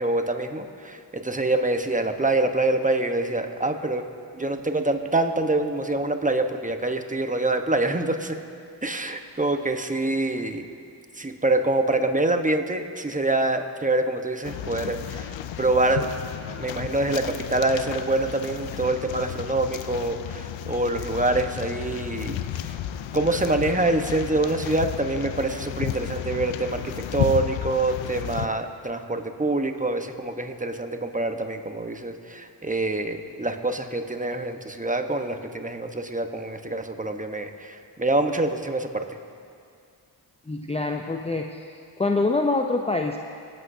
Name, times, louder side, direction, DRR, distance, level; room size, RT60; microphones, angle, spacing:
voice 1, 0.0-4.0 4.3-8.4 8.8-10.7 11.2-16.1 16.6-22.4 22.7-22.8 23.1-39.1, right 2 dB, 15° right, 6 dB, 1.1 m, -25 dB
sound 1, 14.4-28.5, left 11 dB, 75° left, 0.6 m, -33 dB
voice 2, 40.5-41.5 42.0-43.2, left 3 dB, 15° left, 2 dB, 0.6 m, -24 dB
25.0 x 8.6 x 2.8 m, 2.3 s
supercardioid pair, 45°, 46 cm